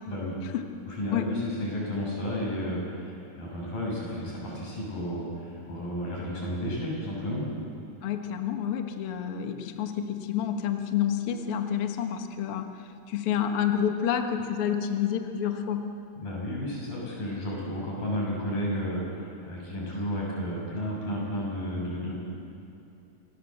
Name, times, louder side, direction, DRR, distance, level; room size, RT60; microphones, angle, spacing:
voice 1, 0.1-0.4 0.9-7.5 16.2-22.2, equal, 75° left, -4 dB, 8.8 m, -32 dB
voice 2, 8.0-15.9, left 9 dB, 55° left, 5 dB, 1.6 m, -29 dB
27.0 x 17.5 x 7.9 m, 2.7 s
omnidirectional pair, 4.0 m